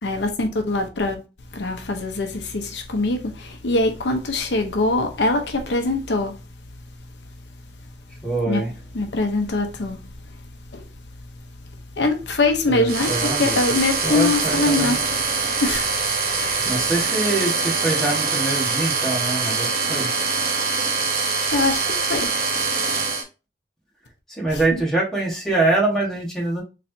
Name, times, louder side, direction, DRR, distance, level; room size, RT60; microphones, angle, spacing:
voice 1, 0.0-1.2 1.5-6.4 8.5-8.6 8.9-10.0 10.7-10.9 12.0-15.1 15.5-15.9 16.2-16.8 21.5-21.8 22.1-22.3 24.5-24.8, left 2 dB, 85° left, 0.7 m, -23 dB
voice 2, 8.2-8.7 12.7-13.6 14.0-15.0 16.6-20.1 24.3-26.6, right 2 dB, 5° left, 1.3 m, -24 dB
sound 1, 12.9-23.2, right 4 dB, 55° right, 0.8 m, -23 dB
4.2 x 3.1 x 2.7 m
head